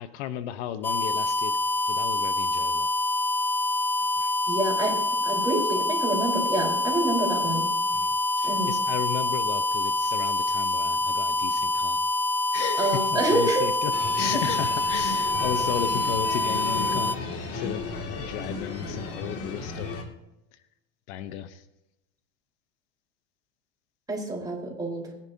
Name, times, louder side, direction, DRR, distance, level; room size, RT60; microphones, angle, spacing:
voice 1, 0.0-1.5 1.9-2.9 4.2-4.3 7.9-12.0 12.5-17.2 17.5-17.8 18.1-19.9 21.1-21.6, left 10 dB, 75° left, 11 dB, 1.1 m, -34 dB
sound 1, 0.8-17.2, left 2 dB, 5° left, 0.4 m, -26 dB
voice 2, 4.5-7.7 8.4-8.7 12.8-13.7 14.3-14.4 24.1-25.1, right 2 dB, 10° right, -1 dB, 4.4 m, -27 dB
sound 2, 13.9-20.0, left 3 dB, 40° left, 2.5 m, -34 dB
22.0 x 10.5 x 2.9 m, 0.93 s
supercardioid pair, 120°, 35 cm